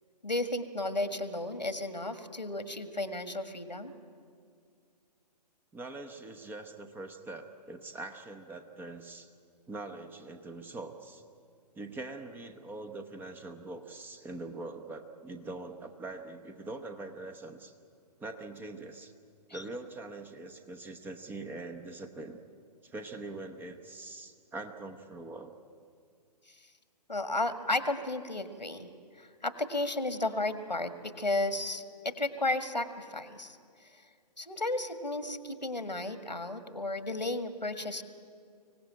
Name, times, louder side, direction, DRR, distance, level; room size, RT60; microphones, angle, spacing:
voice 1, 0.2-3.9 19.5-19.6 26.5-26.6 27.1-28.9 29.2-33.6 33.9-34.0 34.4-38.0, left 2 dB, 90° left, 10 dB, 1.7 m, -33 dB
voice 2, 5.7-9.3 9.7-11.2 11.8-17.7 18.2-19.1 19.5-22.4 22.8-25.5, right 2 dB, 10° right, 7 dB, 0.9 m, -43 dB
24.5 x 17.0 x 8.9 m, 2.2 s
figure-of-eight pair, 125°, 21 cm